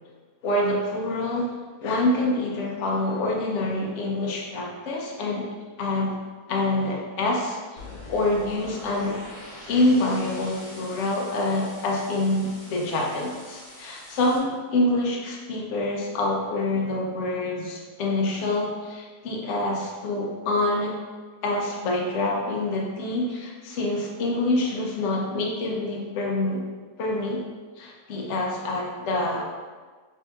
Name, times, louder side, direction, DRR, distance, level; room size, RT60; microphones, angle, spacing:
voice 1, 0.4-1.5 1.8-5.5 5.8-6.2 6.5-7.8 8.1-9.2 9.7-21.0 21.4-26.6 27.0-27.4 27.8-29.4, left 2 dB, 60° left, -1 dB, 0.8 m, -26 dB
sound 1, 7.8-14.4, left 1 dB, 75° left, 0.4 m, -44 dB
5.3 x 2.6 x 2.4 m, 1.4 s
omnidirectional pair, 1.8 m